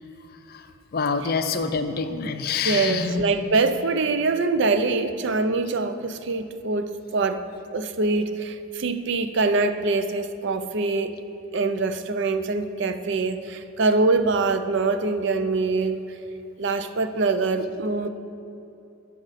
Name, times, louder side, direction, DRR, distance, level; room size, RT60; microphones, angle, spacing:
voice 1, 0.9-3.2, left 5 dB, 45° left, 8 dB, 0.5 m, -26 dB
voice 2, 2.6-7.4 7.7-11.1 11.5-16.0 16.6-18.1, right 3 dB, 55° right, 10 dB, 0.5 m, -24 dB
13.5 x 6.0 x 4.1 m, 2.8 s
head